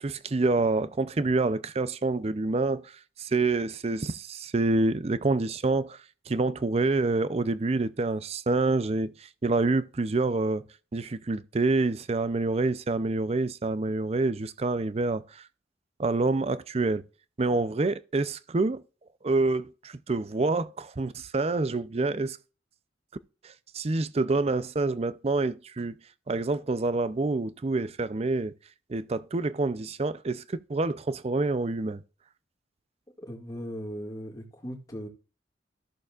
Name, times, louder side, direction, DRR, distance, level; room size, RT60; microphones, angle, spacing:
voice 1, 0.0-2.9 3.2-6.0 6.3-9.1 9.4-10.6 10.9-15.2 16.0-17.0 17.4-18.8 19.2-22.4 23.4-25.9 26.3-28.5 28.9-32.0, right 3 dB, 35° right, 0.5 m, -27 dB
voice 2, 33.2-35.1, equal, 20° left, 2.0 m, -38 dB
14.5 x 6.8 x 2.4 m
head